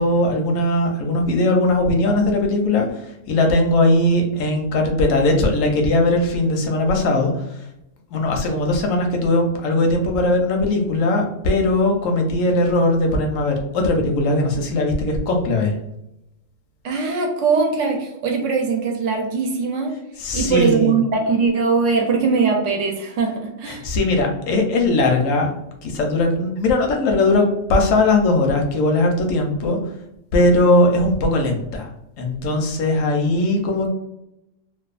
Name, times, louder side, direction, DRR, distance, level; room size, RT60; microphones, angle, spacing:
voice 1, 0.0-3.0 3.3-7.3 8.1-15.7 20.2-20.9 23.7-25.5 25.8-29.8 30.3-31.9 32.2-33.9, left 2 dB, 85° left, 3 dB, 1.0 m, -19 dB
voice 2, 16.8-20.0 20.3-23.8, right 4 dB, 75° right, 2 dB, 0.9 m, -21 dB
2.6 x 2.2 x 2.4 m, 0.87 s
omnidirectional pair, 1.3 m